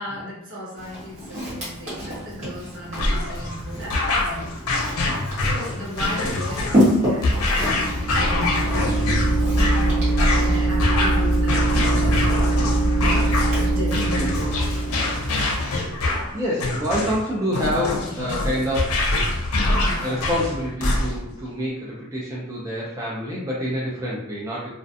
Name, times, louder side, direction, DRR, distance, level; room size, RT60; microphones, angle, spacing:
voice 1, 0.0-4.6 5.3-12.8 13.5-14.6, left 1 dB, 60° right, -6 dB, 1.0 m, -36 dB
Walk footsteps, 0.8-15.8, equal, 35° right, 1.1 m, -30 dB
sound 1, 3.0-21.4, left 2 dB, 75° left, 0.5 m, -25 dB
sound 2, 7.6-15.4, right 2 dB, 85° right, 0.5 m, -22 dB
voice 2, 16.3-19.1 19.9-24.7, equal, 15° right, -6 dB, 0.4 m, -27 dB
2.4 x 2.2 x 2.6 m, 0.79 s
head